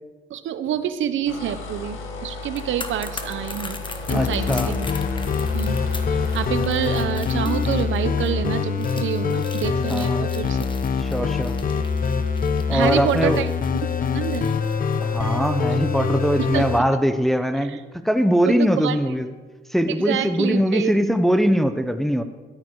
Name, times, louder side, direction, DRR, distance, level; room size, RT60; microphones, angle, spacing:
voice 1, 0.3-3.8 4.1-4.9 5.5-5.8 6.1-10.7 12.7-13.5 13.8-14.5 16.4-16.6 17.7-17.8 18.4-19.0 20.0-20.9, right 10 dB, 75° right, 11 dB, 0.9 m, -27 dB
sound 1, 1.3-7.1, left 2 dB, 90° left, 1.9 m, -35 dB
sound 2, 2.4-15.6 15.9-16.1, left 3 dB, 25° left, 1.4 m, -40 dB
sound 3, 4.1-16.8, left 5 dB, 45° left, 1.0 m, -24 dB
voice 2, 4.1-4.7 9.9-10.3 11.0-11.5 12.7-13.4 15.0-17.8 18.0-19.3 19.7-22.2, equal, ahead, 8 dB, 1.0 m, -21 dB
13.5 x 12.5 x 4.8 m, 1.3 s
cardioid pair, 90°, 20 cm